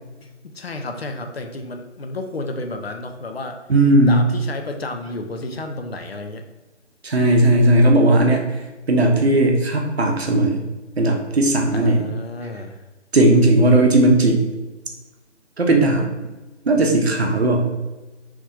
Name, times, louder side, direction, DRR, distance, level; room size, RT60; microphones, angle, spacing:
voice 1, 0.2-3.6 4.0-6.4 11.7-12.8, left 2 dB, 55° left, 5 dB, 0.5 m, -31 dB
voice 2, 3.7-4.2 7.0-8.4 8.9-10.6 11.0-12.1 13.1-14.5 15.6-16.1 16.7-17.7, right 1 dB, 60° right, 2 dB, 0.7 m, -16 dB
3.2 x 2.5 x 3.3 m, 1.1 s
figure-of-eight pair, 160°, 37 cm